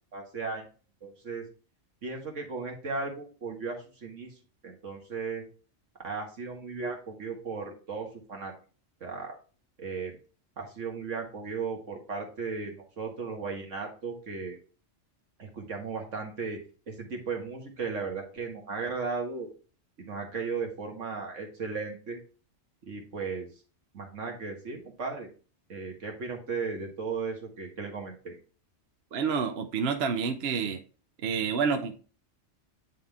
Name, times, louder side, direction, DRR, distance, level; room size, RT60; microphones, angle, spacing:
voice 1, 0.1-0.7 1.0-1.4 2.0-4.3 4.6-5.4 6.0-8.5 9.0-9.4 9.8-10.1 10.6-14.6 15.4-16.6 16.9-19.5 20.0-22.2 22.8-23.5 23.9-25.3 25.7-28.4, right 4 dB, 80° right, 2 dB, 2.0 m, -36 dB
voice 2, 29.1-30.8 31.2-31.9, right 5 dB, 60° right, 6 dB, 0.9 m, -28 dB
9.8 x 3.7 x 3.5 m, 0.37 s
omnidirectional pair, 1.2 m